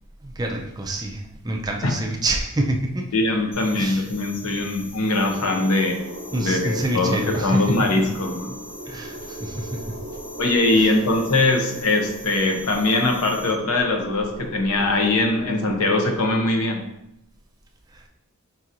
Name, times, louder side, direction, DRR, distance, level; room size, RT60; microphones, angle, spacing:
voice 1, 0.2-3.2 3.7-4.0 6.3-7.6 8.8-9.8 10.7-10.9 17.9-18.1, right 1 dB, 15° right, 2 dB, 0.3 m, -27 dB
voice 2, 3.1-6.0 6.4-8.5 10.4-16.8, left 2 dB, 80° left, 3 dB, 0.7 m, -21 dB
sound 1, 3.5-13.5, left 2 dB, 50° left, 1.3 m, -43 dB
sound 2, 5.3-16.5, right 2 dB, 75° right, 0.6 m, -38 dB
5.3 x 2.8 x 2.5 m, 0.83 s
head